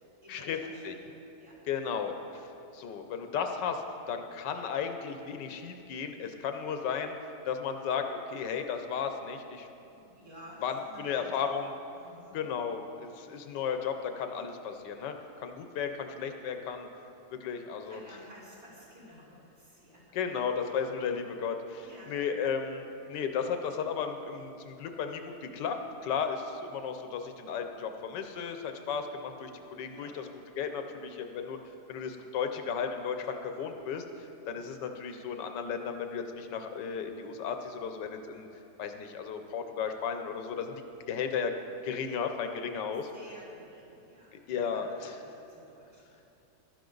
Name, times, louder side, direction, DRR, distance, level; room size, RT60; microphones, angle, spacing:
voice 1, 0.2-0.9 1.4-1.6 10.1-11.5 11.9-12.4 17.8-20.7 21.8-22.2 29.8-30.2 42.9-46.2, equal, 55° right, -8 dB, 4.2 m, -52 dB
voice 2, 1.7-2.5 2.7-7.2 7.5-9.7 9.9-10.0 10.6-11.7 12.3-15.2 15.4-16.9 17.3-18.0 20.1-25.7 26.0-30.2 30.6-31.6 31.9-34.0 34.5-38.5 38.8-40.7 41.1-41.5 41.8-43.1 44.5-44.9, left 6 dB, 85° left, 6 dB, 1.5 m, -34 dB
15.5 x 12.0 x 3.9 m, 2.8 s
omnidirectional pair, 1.8 m